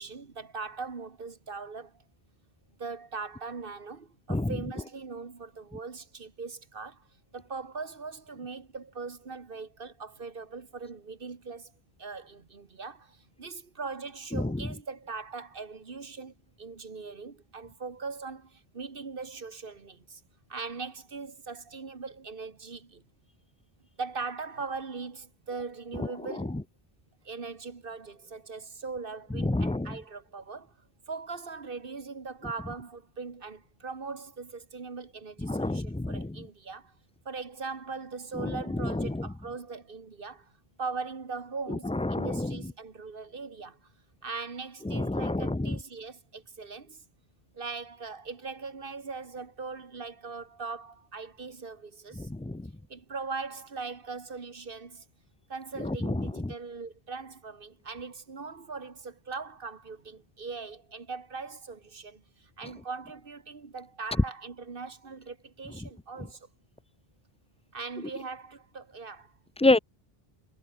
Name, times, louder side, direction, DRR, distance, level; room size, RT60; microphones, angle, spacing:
voice 1, 0.0-2.0 2.8-7.1 7.3-11.7 12.0-20.2 20.5-23.0 24.0-26.6 27.2-30.7 31.1-36.9 37.3-40.5 40.8-43.9 44.2-47.0 47.5-52.3 52.9-55.1 55.5-66.5 67.7-69.3, right 4 dB, 60° right, 1.8 m, -40 dB
voice 2, 29.4-30.0 35.4-36.4 38.4-39.3 41.7-42.6 44.9-45.8 52.2-52.7 55.8-56.5 69.6-69.8, left 2 dB, 10° left, 0.4 m, -28 dB
omnidirectional pair, 1.0 m